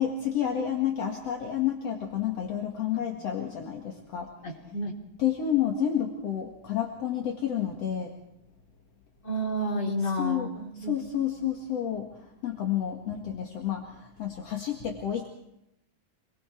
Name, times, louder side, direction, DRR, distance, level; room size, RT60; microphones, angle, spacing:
voice 1, 0.0-4.3 5.2-8.1 10.2-10.5 10.9-15.3, left 10 dB, 60° left, 1 dB, 3.0 m, -30 dB
voice 2, 4.4-4.9 9.2-10.9 13.1-13.2, equal, 35° left, 0 dB, 4.3 m, -31 dB
26.5 x 22.5 x 4.6 m, 0.81 s
omnidirectional pair, 3.3 m